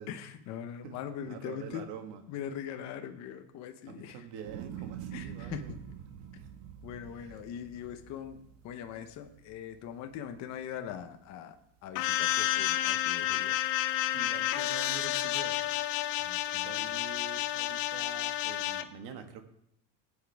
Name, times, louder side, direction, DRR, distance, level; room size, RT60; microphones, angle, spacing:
voice 1, 0.1-1.8 2.3-4.2 5.1-5.7 6.8-11.5 11.8-13.6 16.3-16.7, left 9 dB, 35° left, 6 dB, 0.9 m, -41 dB
voice 2, 0.8-2.2 3.9-5.8 6.4-6.5 7.2-7.4 14.1-15.7 16.5-19.4, right 7 dB, 55° right, 6 dB, 1.7 m, -46 dB
sound 1, 4.4-10.8 11.2-11.8, right 10 dB, 70° right, 1.4 m, -46 dB
sound 2, 11.9-18.8, left 14 dB, 90° left, 0.9 m, -30 dB
20.5 x 8.4 x 3.4 m, 0.76 s
cardioid pair, 180°, 46 cm